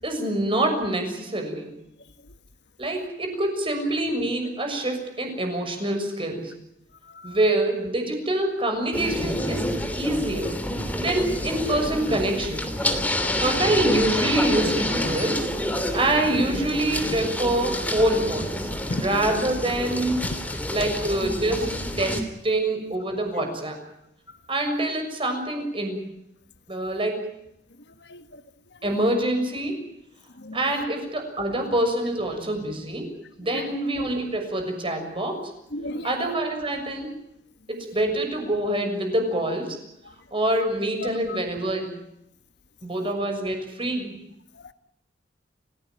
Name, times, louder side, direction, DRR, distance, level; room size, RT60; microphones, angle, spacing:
voice 1, 0.0-1.7 2.8-6.5 7.2-10.6 10.9-12.7 13.4-15.5 15.9-20.2 20.7-23.8 24.5-26.0 26.7-27.3 28.8-29.8 30.5-35.5 36.0-37.1 37.7-39.8 40.3-42.0 42.8-44.1, right 1 dB, 30° right, 5 dB, 6.6 m, -26 dB
voice 2, 7.0-7.4 18.9-19.0 28.1-28.4 28.8-28.9 30.4-30.6 33.5-33.6 35.7-36.1 41.0-41.4 44.5-44.7, left 2 dB, 60° left, 11 dB, 1.4 m, -35 dB
sound 1, 8.9-22.2, left 1 dB, 10° left, 2.9 m, -28 dB
29.0 x 17.0 x 9.1 m, 0.81 s
head